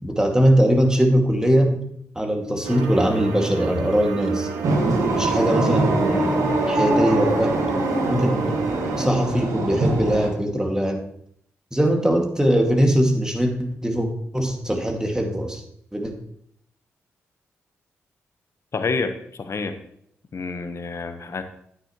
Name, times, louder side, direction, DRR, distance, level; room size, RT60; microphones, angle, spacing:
voice 1, 0.0-1.8 2.2-4.5 5.1-7.6 8.0-8.6 9.0-11.0 11.7-14.1 14.3-15.6 15.9-16.1, equal, 10° right, 2 dB, 2.1 m, -21 dB
sound 1, 2.6-9.1, right 5 dB, 90° right, 0.9 m, -30 dB
sound 2, 4.6-10.3, right 2 dB, 70° right, 1.7 m, -23 dB
voice 2, 18.7-19.7 20.3-21.4, left 4 dB, 55° left, 8 dB, 1.1 m, -28 dB
9.8 x 9.2 x 3.1 m, 0.70 s
supercardioid pair, 40°, 6 cm